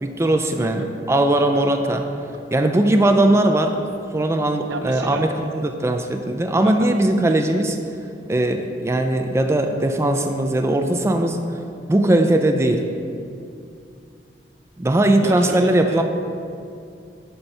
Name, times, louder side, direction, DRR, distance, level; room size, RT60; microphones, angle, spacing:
voice 1, 0.0-2.1 2.5-3.8 4.1-5.3 5.5-7.7 8.3-11.4 11.9-12.8 14.8-16.0, right 1 dB, 15° right, 5 dB, 0.4 m, -19 dB
voice 2, 0.6-0.9 4.7-5.6 6.6-6.9 7.3-7.4 15.2-16.0, right 3 dB, 80° right, 6 dB, 0.7 m, -33 dB
8.8 x 4.5 x 5.3 m, 2.4 s
head